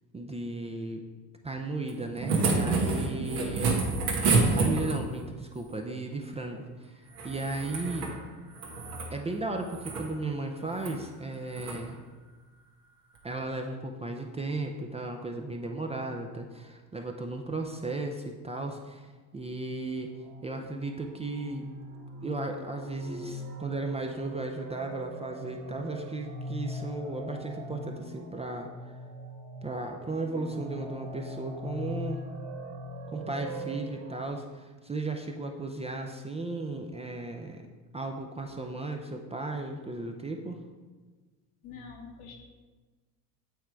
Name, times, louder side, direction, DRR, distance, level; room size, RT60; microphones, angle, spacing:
voice 1, 0.1-1.0 1.4-3.8 4.5-8.1 9.1-12.0 13.2-20.1 20.4-21.6 22.2-28.7 29.6-32.2 33.1-37.6 37.9-40.6, right 2 dB, 15° right, 2 dB, 0.4 m, -35 dB
sound 1, 1.9-5.2 7.1-8.2 8.5-9.1 9.6-10.1 10.7-11.0 11.5-11.8 13.2-13.3, right 3 dB, 85° right, 1.4 m, -28 dB
sound 2, 19.5-34.3, equal, 55° right, 1.9 m, -41 dB
voice 2, 41.6-42.4, left 5 dB, 75° left, 1 dB, 1.3 m, -45 dB
8.2 x 3.1 x 4.5 m, 1.3 s
hypercardioid pair, 75°, 48 cm